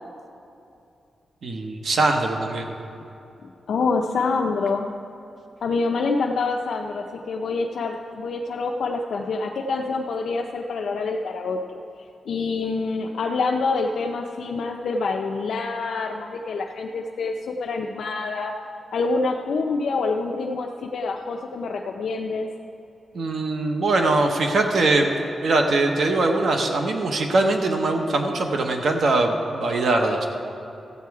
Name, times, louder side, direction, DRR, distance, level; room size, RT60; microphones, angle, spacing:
voice 1, 1.4-2.7 23.1-25.1 25.4-30.3, right 2 dB, 60° right, 3 dB, 0.9 m, -22 dB
voice 2, 3.4-4.9 5.6-11.6 12.3-18.5 18.9-22.5, left 4 dB, 70° left, 1 dB, 0.5 m, -26 dB
14.5 x 8.2 x 4.7 m, 2.7 s
wide cardioid pair, 170°, 0 cm